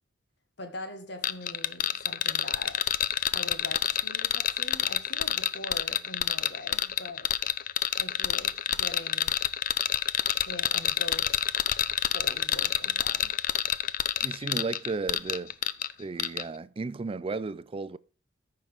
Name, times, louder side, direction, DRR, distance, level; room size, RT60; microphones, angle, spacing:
voice 1, 0.6-2.8 3.3-7.3 8.0-9.4 10.5-11.3 12.1-13.3, left 2 dB, 65° left, 1.6 m, -42 dB
sound 1, 1.2-15.9 16.2-16.4, left 10 dB, 50° left, 0.5 m, -27 dB
voice 2, 14.2-15.5 16.0-18.0, right 3 dB, 30° right, 0.4 m, -34 dB
14.0 x 5.7 x 3.5 m
head